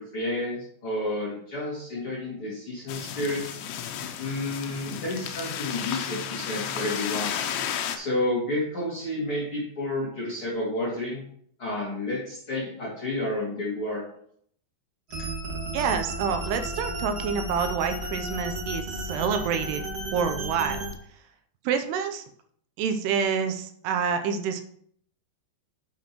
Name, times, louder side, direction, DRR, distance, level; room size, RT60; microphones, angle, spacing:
voice 1, 0.0-3.6 4.2-7.3 7.9-11.2 11.6-14.0, left 1 dB, 35° left, -6 dB, 2.6 m, -30 dB
sound 1, 2.9-8.0, left 9 dB, 85° left, 3.0 m, -33 dB
sound 2, 15.1-20.9, right 1 dB, 40° right, 1.5 m, -33 dB
voice 2, 15.7-19.8 20.1-20.9 21.7-22.2 22.8-24.6, right 6 dB, 80° right, 7 dB, 2.6 m, -27 dB
9.4 x 7.7 x 3.0 m, 0.63 s
omnidirectional pair, 5.0 m